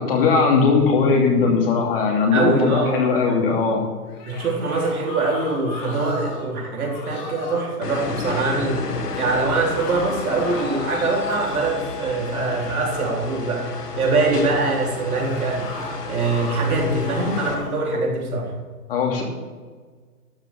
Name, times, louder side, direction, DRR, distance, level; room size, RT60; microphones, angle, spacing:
voice 1, 0.0-3.8 18.9-19.2, left 5 dB, 35° left, 1 dB, 2.7 m, -19 dB
voice 2, 2.3-3.6 4.2-8.8 9.2-13.7 14.0-15.7 16.1-18.5, right 3 dB, 65° right, -1 dB, 4.0 m, -23 dB
sound 1, 4.1-6.5 6.8-7.7 9.1-11.8 12.2-13.2 15.1-16.6 17.0-17.8, left 3 dB, 10° left, 1.2 m, -36 dB
sound 2, 7.8-17.5, left 4 dB, 80° left, 2.1 m, -32 dB
12.5 x 7.3 x 6.6 m, 1.5 s
hypercardioid pair, 160°, 47 cm